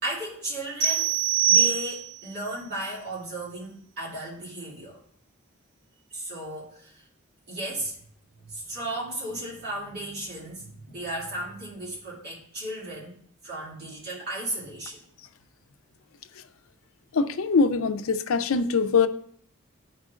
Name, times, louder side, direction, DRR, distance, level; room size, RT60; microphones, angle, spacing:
voice 1, 0.0-1.1 1.5-5.0 6.1-7.0 7.5-8.0 8.4-13.2 13.4-15.0, right 1 dB, 50° right, -6 dB, 2.5 m, -35 dB
sound 1, 0.8-2.3, right 9 dB, 85° right, 3.1 m, -23 dB
voice 2, 17.1-19.1, left 4 dB, 80° left, 9 dB, 0.5 m, -23 dB
12.0 x 4.6 x 2.5 m, 0.63 s
head